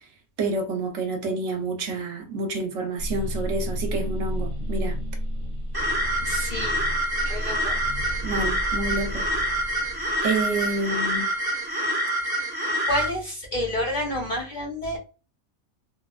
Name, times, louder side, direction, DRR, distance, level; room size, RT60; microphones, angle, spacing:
voice 1, 0.4-5.0 8.2-9.3 10.2-11.3, right 2 dB, 60° right, 0.9 m, -28 dB
sound 1, 3.0-11.1, equal, 20° right, 0.7 m, -32 dB
sound 2, 5.7-13.1, right 1 dB, 40° right, 0.3 m, -27 dB
voice 2, 6.2-6.8 7.2-7.7 12.9-15.0, left 1 dB, 50° left, 0.6 m, -29 dB
3.1 x 2.1 x 2.3 m
omnidirectional pair, 1.5 m